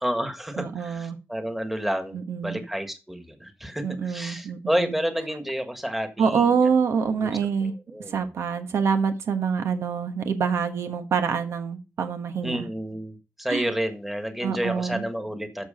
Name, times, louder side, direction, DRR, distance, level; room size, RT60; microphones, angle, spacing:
voice 1, 0.0-6.6 7.2-7.3 7.6-8.2 12.4-15.7, equal, 5° right, 1.6 m, -30 dB
voice 2, 0.6-1.2 2.1-2.6 3.8-4.9 6.2-7.7 8.1-12.7 13.5-13.7 14.4-15.0, right 6 dB, 85° right, 1.2 m, -26 dB
13.0 x 4.7 x 5.1 m
wide cardioid pair, 115°, 5 cm